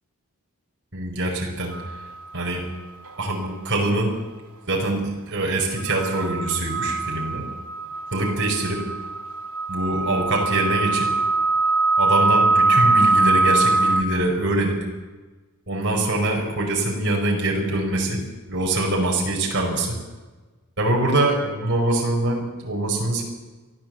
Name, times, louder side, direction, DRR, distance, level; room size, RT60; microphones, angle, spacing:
voice 1, 0.9-1.7 2.3-2.6 3.2-4.1 4.7-7.4 8.1-8.8 9.7-11.1 12.0-14.8 15.7-18.2 18.5-19.9 20.8-23.2, right 2 dB, 55° right, -1 dB, 4.9 m, -23 dB
sound 1, 1.7-2.1 5.8-14.0, right 3 dB, 80° right, 1.9 m, -22 dB
23.5 x 14.5 x 7.8 m, 1.3 s
head